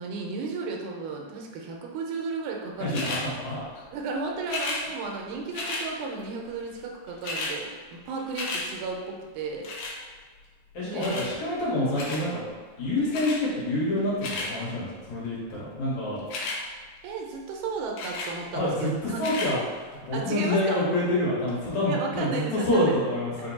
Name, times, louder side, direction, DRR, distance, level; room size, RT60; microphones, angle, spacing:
voice 1, 0.0-3.1 3.9-9.7 10.8-11.2 17.0-19.5 20.1-20.8 21.9-23.0, right 4 dB, 90° right, 0 dB, 2.1 m, -34 dB
voice 2, 2.8-3.6 10.7-12.4 12.8-16.2 18.5-19.6 20.0-23.5, left 1 dB, 70° left, -7 dB, 2.4 m, -27 dB
sound 1, 2.9-3.2 4.4-4.8 5.5-5.8 6.8-6.9 7.1-7.5 7.9-8.6 9.6-10.0 11.0-11.3 11.9-12.2 13.1-13.4 14.0-14.5 16.2-16.6 18.0-18.3 19.1-19.5 20.2-20.3, left 3 dB, 85° left, 2.3 m, -32 dB
5.3 x 2.1 x 4.0 m, 1.5 s
omnidirectional pair, 3.4 m